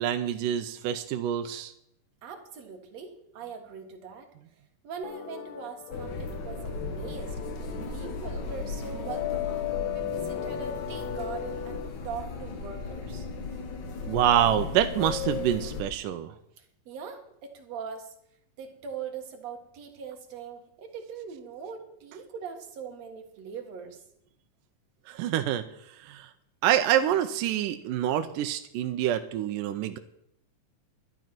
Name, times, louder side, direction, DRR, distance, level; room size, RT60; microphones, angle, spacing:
voice 1, 0.0-1.7 14.1-16.3 25.1-25.6 26.0-26.3 26.6-30.0, right 11 dB, 80° right, 7 dB, 2.3 m, -26 dB
voice 2, 2.2-4.3 4.8-7.4 7.9-13.3 16.6-18.1 18.6-24.0, right 6 dB, 55° right, 4 dB, 2.6 m, -41 dB
sound 1, 5.0-11.9, left 11 dB, 85° left, 1.6 m, -36 dB
sound 2, 5.9-15.8, left 4 dB, 50° left, 1.4 m, -36 dB
12.0 x 11.0 x 6.0 m, 0.75 s
omnidirectional pair, 3.9 m